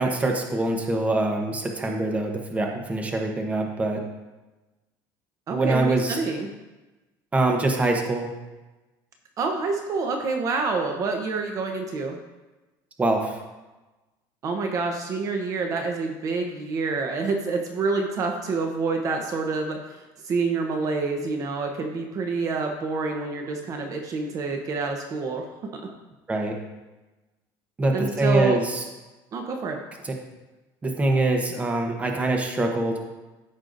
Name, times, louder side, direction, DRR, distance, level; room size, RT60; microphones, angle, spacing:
voice 1, 0.0-4.0 5.5-6.2 7.3-8.3 13.0-13.4 26.3-26.6 27.8-28.8 30.0-30.2 30.8-33.0, right 2 dB, 15° right, 2 dB, 1.0 m, -24 dB
voice 2, 5.5-6.5 9.4-12.2 14.4-19.8 20.2-25.5 25.7-25.8 27.9-28.6 29.3-29.8, right 4 dB, 40° right, 3 dB, 0.9 m, -27 dB
14.0 x 5.5 x 2.6 m, 1.1 s
cardioid pair, 145°, 9 cm